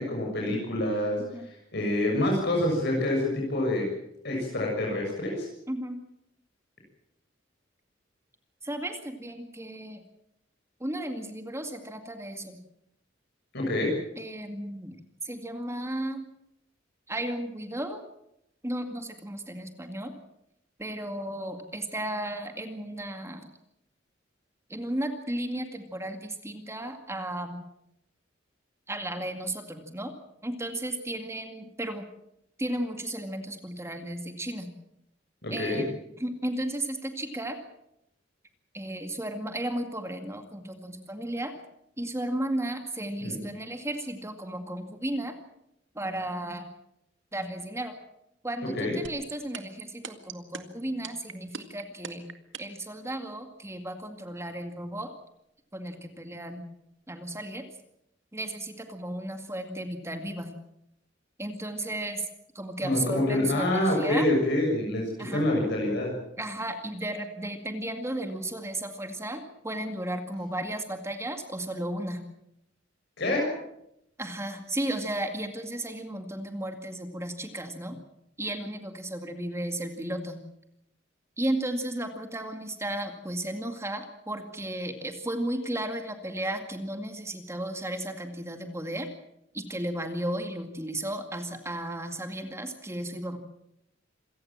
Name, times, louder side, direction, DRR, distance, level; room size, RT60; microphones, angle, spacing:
voice 1, 0.0-1.2 1.7-3.9 4.2-5.5 13.5-13.9 35.4-35.8 43.2-43.4 48.7-49.0 62.8-66.1 73.2-73.6, left 1 dB, 60° left, -1 dB, 6.8 m, -26 dB
voice 2, 5.7-6.0 8.6-10.0 10.8-12.6 14.2-15.0 15.2-16.2 17.1-18.0 18.6-20.1 20.8-23.5 24.7-27.6 28.9-30.1 30.4-32.1 32.6-34.7 35.5-37.6 38.7-41.5 42.0-45.4 45.9-46.7 47.3-47.9 48.4-52.3 52.6-55.1 55.7-56.6 57.1-57.6 58.3-60.5 61.4-62.3 62.5-64.3 65.2-65.4 66.4-72.2 74.2-78.0 78.4-80.4 81.4-89.1 89.5-93.4, right 1 dB, 15° right, 6 dB, 2.1 m, -34 dB
sound 1, 49.0-52.8, right 6 dB, 75° right, 2.0 m, -38 dB
27.0 x 16.5 x 7.4 m, 0.80 s
head